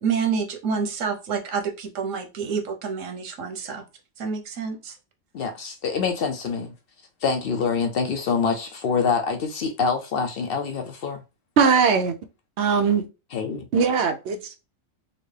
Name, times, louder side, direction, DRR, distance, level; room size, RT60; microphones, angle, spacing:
voice 1, 0.0-3.8 4.2-4.9, right 6 dB, 85° right, 1.1 m, -28 dB
voice 2, 5.3-6.7 7.2-11.2 13.3-13.7, left 5 dB, 60° left, 0.6 m, -25 dB
voice 3, 11.6-12.1 12.6-13.0 13.7-14.6, right 5 dB, 65° right, 0.9 m, -20 dB
4.0 x 2.1 x 3.2 m
omnidirectional pair, 1.3 m